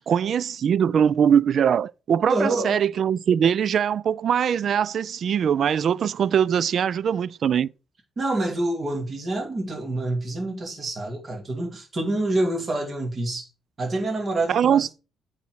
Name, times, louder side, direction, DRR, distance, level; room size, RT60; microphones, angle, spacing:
voice 1, 0.1-7.7 14.5-14.9, right 8 dB, 60° right, 0.3 m, -22 dB
voice 2, 2.3-2.8 8.2-13.5 13.8-14.9, right 2 dB, 40° right, 2.5 m, -27 dB
8.5 x 4.3 x 6.0 m
cardioid pair, 90°, 0 cm